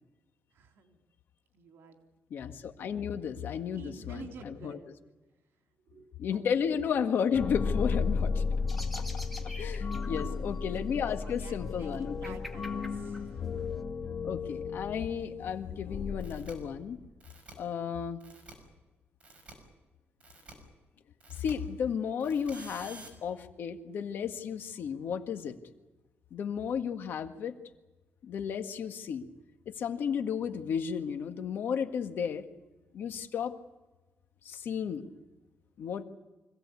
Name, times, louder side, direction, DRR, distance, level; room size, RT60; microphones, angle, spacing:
voice 1, 0.5-1.0 1.5-2.0 3.7-4.9 5.9-6.1 6.3-6.4 10.1-10.4 11.2-13.4, right 5 dB, 85° right, 4 dB, 3.2 m, -50 dB
voice 2, 2.3-4.8 6.2-8.4 8.9-9.2 9.6-12.4 14.2-17.0 17.6-18.2 21.4-25.6 26.3-27.6 28.2-29.3 29.6-32.4 32.9-33.5 34.4-35.0 35.8-36.0, left 7 dB, 65° left, 7 dB, 1.7 m, -33 dB
sound 1, 7.3-17.0, left 5 dB, 45° left, 2.5 m, -34 dB
sound 2, 8.7-13.8, left 1 dB, ahead, 2.1 m, -48 dB
sound 3, 16.2-16.5 17.2-17.5 18.2-18.5 19.2-19.5 20.2-20.5 21.2-21.5 22.2-23.1, right 3 dB, 30° right, 5.8 m, -50 dB
25.5 x 16.5 x 8.4 m, 1.1 s
cardioid pair, 130°, 4 cm